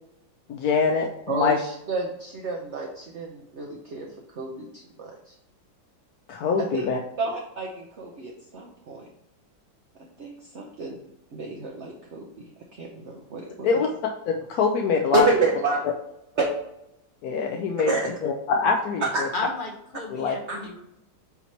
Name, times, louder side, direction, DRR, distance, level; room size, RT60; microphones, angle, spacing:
voice 1, 0.5-1.6 6.3-7.0 13.6-13.9 14.3-15.3 17.2-17.9 18.2-19.0 20.1-20.4, left 5 dB, 70° left, 2 dB, 0.9 m, -24 dB
voice 2, 1.3-5.3 6.7-6.9 7.2-9.1 10.2-11.0 11.3-12.3 12.7-13.8 15.1-15.8 16.4-16.5 17.5-18.1 19.0-19.3 20.5-20.6, right 3 dB, 55° right, 0 dB, 0.8 m, -29 dB
voice 3, 19.3-20.8, left 2 dB, 45° left, 0 dB, 0.7 m, -33 dB
8.0 x 2.9 x 4.4 m, 0.82 s
omnidirectional pair, 2.1 m